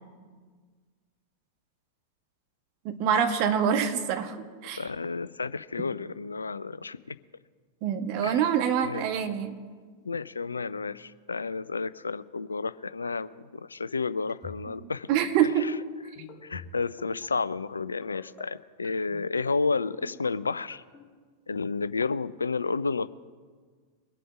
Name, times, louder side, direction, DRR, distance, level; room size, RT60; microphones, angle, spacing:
voice 1, 2.8-4.4 4.6-4.9 7.8-9.6 15.1-15.7, right 8 dB, 45° right, 6 dB, 1.5 m, -25 dB
voice 2, 4.7-7.2 8.2-8.4 8.8-9.1 10.0-15.1 15.6-15.7 16.4-20.8 21.5-23.1, left 4 dB, 75° left, 17 dB, 0.4 m, -31 dB
sound 1, 14.3-14.8 15.1-15.4 16.2-16.7 17.0-17.3 18.0-18.4 18.8-19.2 19.9-20.3 20.7-21.0, left 6 dB, 25° left, 2.9 m, -45 dB
23.0 x 7.7 x 5.1 m, 1.5 s
figure-of-eight pair, 90°, 0 cm